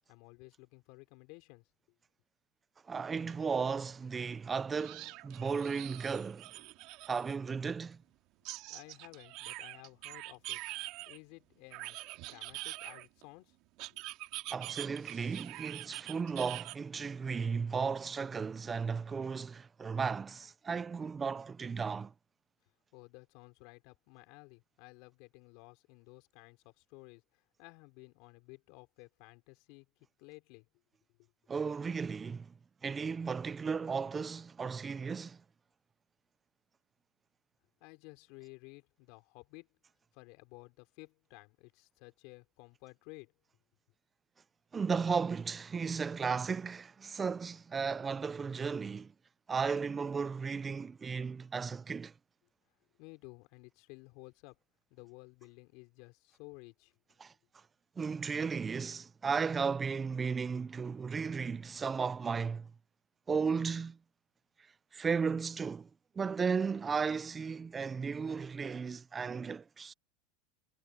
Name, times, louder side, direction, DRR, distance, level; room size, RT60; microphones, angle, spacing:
voice 1, 0.1-1.7 8.7-10.6 11.0-13.6 13.9-14.0 22.9-29.9 30.2-30.7 31.2-31.3 37.8-39.7 40.1-43.3 53.0-54.6 54.9-56.9, left 27 dB, 55° left, 5.0 m, -54 dB
voice 2, 2.9-6.5 7.1-8.0 14.5-22.1 31.5-32.5 32.8-35.4 44.7-49.1 49.5-52.1 57.2-57.3 58.0-62.7 63.3-64.0 64.9-65.9 66.2-69.9, right 5 dB, 15° right, 0.5 m, -35 dB
sound 1, 3.3-3.4 3.7-3.8 4.8-7.4 8.5-11.2 11.7-13.2 13.8-16.8, right 19 dB, 50° right, 2.7 m, -44 dB
supercardioid pair, 145°, 0 cm